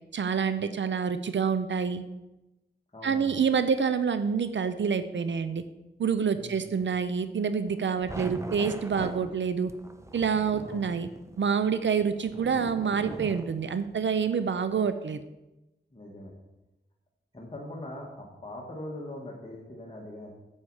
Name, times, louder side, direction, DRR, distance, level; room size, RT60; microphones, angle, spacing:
voice 1, 0.1-2.0 3.0-5.6 6.0-9.7 10.1-11.1 11.4-15.2, right 6 dB, 70° right, 11 dB, 0.5 m, -27 dB
voice 2, 2.9-3.4 6.3-6.8 10.6-10.8 15.9-16.3 17.3-20.3, left 1 dB, 30° left, -3 dB, 1.8 m, -41 dB
sound 1, 7.7-14.0, right 1 dB, 15° right, 0.7 m, -41 dB
9.6 x 7.2 x 4.8 m, 0.99 s
wide cardioid pair, 80°, 20 cm